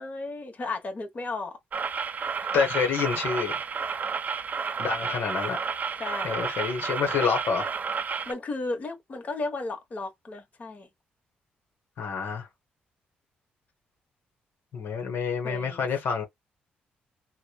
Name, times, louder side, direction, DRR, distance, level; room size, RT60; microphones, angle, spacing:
voice 1, 0.0-1.6 5.0-5.2 6.0-6.4 8.3-10.9 15.4-15.9, left 3 dB, 40° left, 1.1 m, -34 dB
sound 1, 1.7-8.3, right 5 dB, 45° right, 0.4 m, -31 dB
voice 2, 2.5-3.5 4.8-5.6 6.2-7.7 12.0-12.5 14.7-16.2, left 6 dB, 75° left, 1.0 m, -27 dB
2.9 x 2.1 x 2.3 m
supercardioid pair, 60°, 4 cm